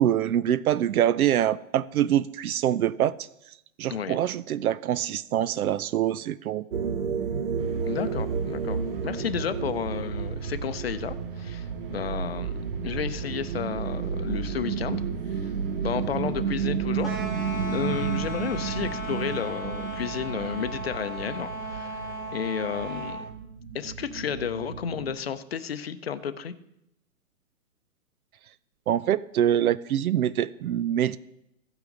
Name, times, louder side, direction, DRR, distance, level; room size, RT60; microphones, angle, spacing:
voice 1, 0.0-3.2 3.8-6.6 28.9-31.2, right 11 dB, 80° right, 0.5 m, -24 dB
sound 1, 6.7-25.2, right 6 dB, 65° right, 1.0 m, -32 dB
sound 2, 7.6-23.3, right 6 dB, 40° right, 1.2 m, -51 dB
voice 2, 7.9-12.5 12.8-15.0 15.8-22.0 22.3-23.2 23.7-26.5, left 8 dB, 45° left, 0.6 m, -32 dB
sound 3, 17.0-23.2, equal, 5° right, 0.7 m, -36 dB
16.0 x 6.0 x 3.8 m
hypercardioid pair, 175°, 42 cm